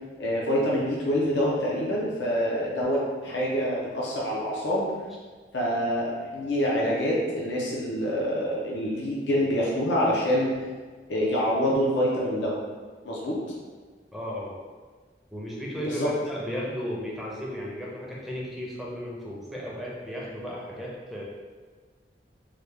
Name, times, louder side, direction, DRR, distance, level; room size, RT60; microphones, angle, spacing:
voice 1, 0.2-4.9 5.5-10.6 11.1-12.5 13.0-13.4 15.8-16.1, equal, 80° left, -5 dB, 0.6 m, -26 dB
voice 2, 14.1-14.5 15.3-21.2, equal, ahead, -5 dB, 0.5 m, -35 dB
3.2 x 2.2 x 3.3 m, 1.5 s
head